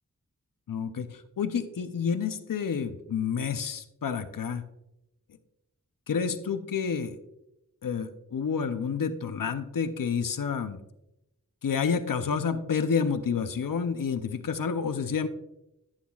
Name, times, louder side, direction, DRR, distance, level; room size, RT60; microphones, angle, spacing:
voice 1, 0.7-4.6 6.1-7.2 7.8-10.8 11.6-15.3, left 6 dB, 90° left, 10 dB, 0.6 m, -29 dB
11.5 x 8.9 x 2.3 m, 0.87 s
wide cardioid pair, 50°, 32 cm